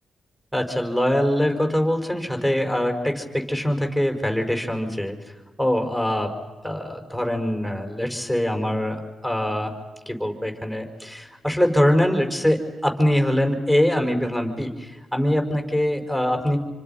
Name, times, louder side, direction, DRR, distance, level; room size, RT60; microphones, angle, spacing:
voice 1, 0.5-5.1 5.6-6.3 6.6-9.7 10.1-16.6, equal, 5° right, 4 dB, 5.0 m, -23 dB
27.0 x 25.0 x 5.6 m, 1.3 s
supercardioid pair, 60°, 0 cm